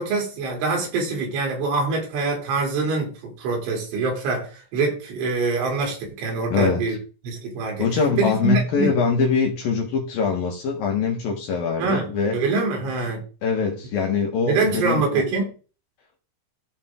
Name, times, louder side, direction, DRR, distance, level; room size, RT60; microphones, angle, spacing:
voice 1, 0.0-7.0 7.2-7.9 8.2-8.9 11.8-13.2 14.5-15.5, right 3 dB, 80° right, 5.6 m, -24 dB
voice 2, 6.5-6.8 7.8-12.4 13.4-15.2, left 5 dB, 60° left, 2.8 m, -23 dB
14.0 x 5.2 x 3.8 m
omnidirectional pair, 5.5 m